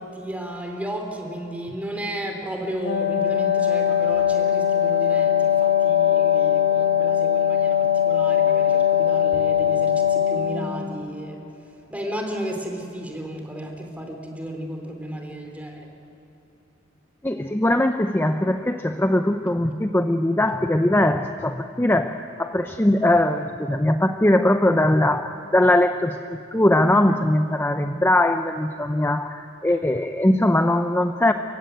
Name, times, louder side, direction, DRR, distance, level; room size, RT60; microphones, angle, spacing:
voice 1, 0.0-11.5 11.9-15.9 20.4-20.5, right 1 dB, 10° right, 2 dB, 3.4 m, -34 dB
Wind instrument woodwind instrument, 2.7-10.7, left 9 dB, 80° left, 2.8 m, -20 dB
voice 2, 17.2-31.3, left 1 dB, 10° left, 7 dB, 0.6 m, -21 dB
30.0 x 16.0 x 9.2 m, 2.9 s
head